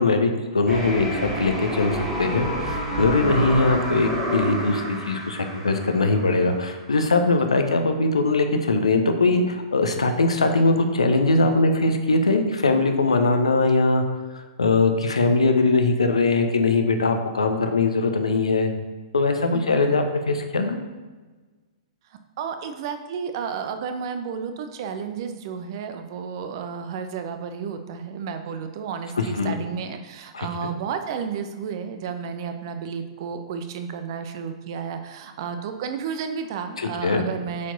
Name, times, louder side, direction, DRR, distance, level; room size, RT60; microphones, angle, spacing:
voice 1, 0.0-14.0 14.3-18.7 19.1-20.8 29.2-29.5 30.3-30.5 36.8-37.2, left 3 dB, 75° left, 5 dB, 1.0 m, -21 dB
sound 1, 0.7-6.6, equal, 20° right, 2.3 m, -29 dB
voice 2, 3.3-3.6 7.5-7.6 15.4-15.5 19.5-19.8 22.4-37.7, right 6 dB, 45° right, 8 dB, 0.8 m, -32 dB
8.3 x 4.6 x 4.0 m, 1.3 s
figure-of-eight pair, 110°, 3 cm